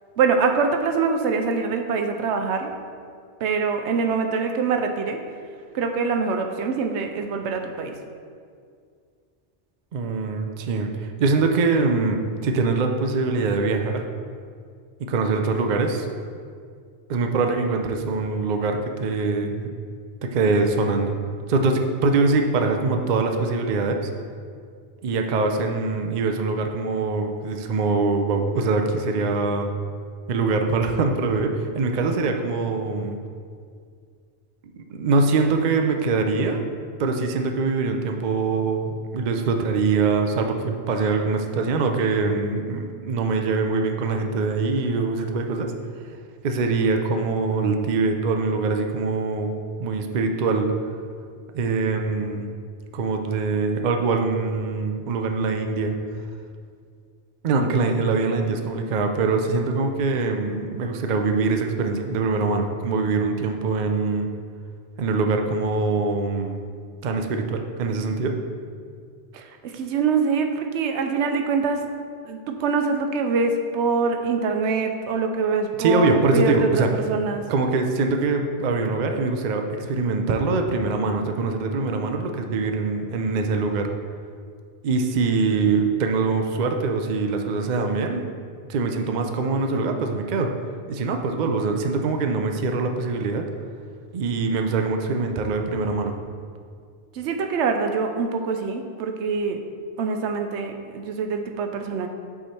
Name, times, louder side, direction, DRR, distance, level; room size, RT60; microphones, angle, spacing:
voice 1, 0.2-2.7 3.4-5.2 5.7-7.9 69.3-71.9 72.3-76.7 77.1-77.4 97.2-99.6 100.0-102.1, right 5 dB, 85° right, 5 dB, 0.9 m, -24 dB
voice 2, 9.9-14.0 15.0-16.1 17.1-19.7 20.2-21.1 21.5-24.1 25.0-29.7 30.3-33.2 34.6-36.6 37.0-45.7 46.4-49.5 49.8-50.7 51.5-52.5 52.9-56.1 57.4-64.3 65.0-66.6 67.0-68.4 75.8-76.9 77.5-83.9 84.8-88.3 88.7-90.5 90.9-93.5 94.1-96.1, right 3 dB, 55° right, 4 dB, 0.6 m, -23 dB
8.1 x 3.6 x 4.4 m, 2.2 s
omnidirectional pair, 1.2 m